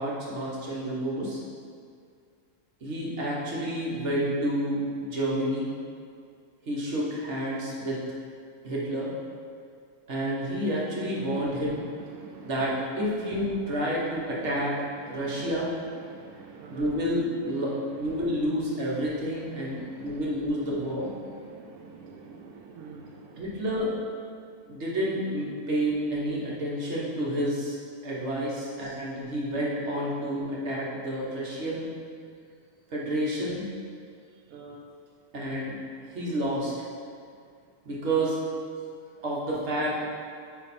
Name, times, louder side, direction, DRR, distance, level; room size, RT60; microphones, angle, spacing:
voice 1, 0.0-1.4 2.8-5.7 6.6-8.0 8.6-9.1 10.1-11.8 12.4-14.8 15.1-15.7 16.7-21.1 23.4-24.0 24.7-31.9 32.9-33.6 35.3-35.8 36.0-36.7 37.8-38.4 39.2-40.1, equal, 60° right, -5 dB, 1.5 m, -29 dB
voice 2, 11.2-12.5 13.9-14.0 14.3-14.5 15.0-15.5 16.0-16.9 17.5-17.6 19.6-20.3 21.2-23.4 28.5-28.9 34.5-34.8, right 5 dB, 90° right, 0 dB, 1.0 m, -47 dB
9.1 x 3.2 x 4.2 m, 2.2 s
omnidirectional pair, 1.4 m